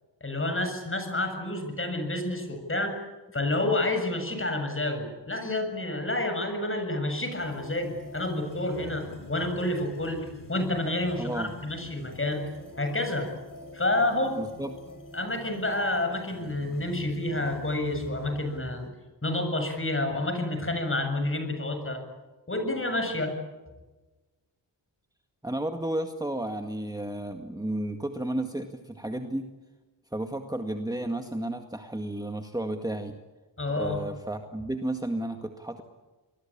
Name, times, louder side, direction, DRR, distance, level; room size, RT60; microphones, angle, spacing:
voice 1, 0.2-3.0 3.3-12.4 12.8-13.3 13.7-14.4 15.1-18.9 19.2-22.0 22.5-23.3 33.6-34.0, left 2 dB, 30° left, 6 dB, 7.5 m, -29 dB
sound 1, 7.4-18.9, left 2 dB, 45° left, 5.0 m, -45 dB
voice 2, 11.2-11.5 14.4-14.7 25.4-29.5 30.1-33.2 33.8-35.8, right 1 dB, 10° right, 5 dB, 2.0 m, -32 dB
27.0 x 21.5 x 8.8 m, 1.2 s
wide cardioid pair, 85°, 44 cm